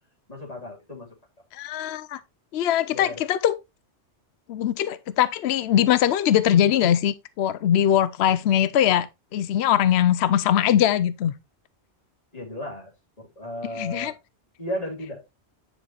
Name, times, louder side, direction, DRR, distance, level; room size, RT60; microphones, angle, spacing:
voice 1, 0.3-1.1 2.9-3.2 12.3-12.9 13.2-14.2 14.6-15.3, equal, 35° left, 3.4 m, -34 dB
voice 2, 1.5-2.2 2.5-3.6 4.5-11.3 13.8-14.1, left 10 dB, 70° left, 0.8 m, -21 dB
10.0 x 6.0 x 3.0 m
omnidirectional pair, 1.1 m